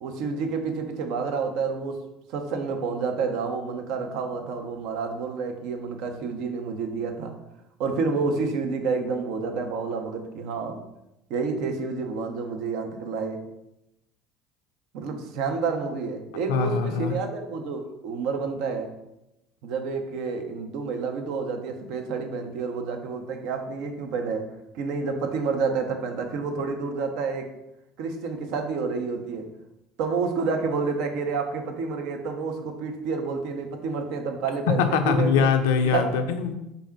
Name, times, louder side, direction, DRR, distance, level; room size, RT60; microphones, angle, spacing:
voice 1, 0.0-2.0 2.3-7.3 7.8-10.8 11.3-13.4 14.9-18.9 19.6-24.5 24.7-27.5 28.0-29.5 30.0-35.5 35.8-36.2, right 4 dB, 60° right, 5 dB, 0.5 m, -29 dB
voice 2, 16.5-17.1 34.8-36.5, left 6 dB, 70° left, 7 dB, 0.4 m, -23 dB
3.3 x 2.6 x 4.4 m, 0.89 s
figure-of-eight pair, 60°, 0 cm